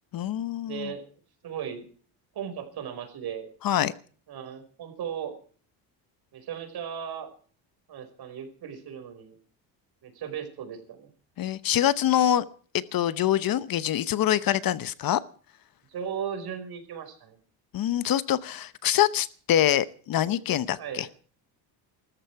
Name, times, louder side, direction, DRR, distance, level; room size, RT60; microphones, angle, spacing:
voice 1, 0.1-0.9 3.6-3.9 11.4-12.4 12.7-15.2 17.7-21.1, left 11 dB, 45° left, 16 dB, 0.9 m, -25 dB
voice 2, 0.6-1.0 1.4-1.9 2.4-3.5 4.3-5.3 6.3-7.3 7.9-9.4 10.0-11.1 15.9-17.4 20.8-21.1, right 8 dB, 50° right, 7 dB, 5.2 m, -36 dB
18.5 x 14.0 x 4.7 m, 0.44 s
cardioid pair, 110°, 47 cm